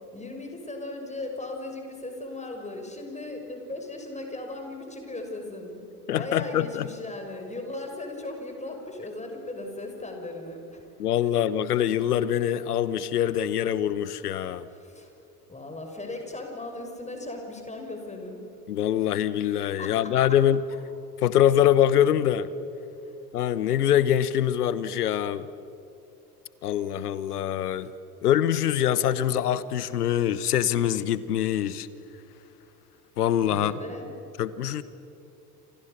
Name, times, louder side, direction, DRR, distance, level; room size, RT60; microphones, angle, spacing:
voice 1, 0.1-5.8 6.1-10.8 11.2-11.4 14.7-15.1 15.5-18.4 19.8-20.4 33.5-34.1, left 2 dB, 15° left, 6.0 m, -37 dB
voice 2, 6.1-6.9 11.0-14.7 18.7-20.6 21.2-22.5 23.3-25.5 26.6-27.9 28.2-31.9 33.2-33.7 34.4-34.8, left 10 dB, 80° left, 1.1 m, -24 dB
29.0 x 27.5 x 6.8 m
figure-of-eight pair, 65°, 46 cm